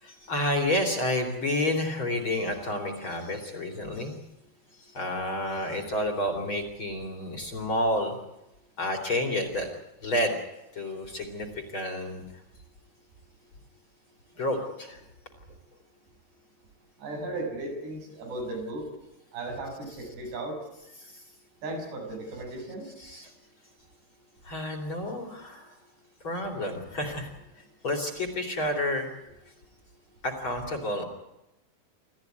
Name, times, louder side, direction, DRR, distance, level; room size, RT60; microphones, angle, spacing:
voice 1, 0.0-4.1 4.8-8.2 8.8-9.7 10.0-10.5 10.7-12.2 14.3-15.0 21.0-21.2 23.0-23.3 24.4-25.8 26.2-29.1 30.2-31.0, left 1 dB, 30° left, 3 dB, 4.0 m, -30 dB
voice 2, 17.0-18.8 19.3-20.6 21.6-22.9, right 2 dB, 85° right, 1 dB, 8.8 m, -36 dB
28.0 x 14.5 x 9.5 m, 0.93 s
omnidirectional pair, 4.7 m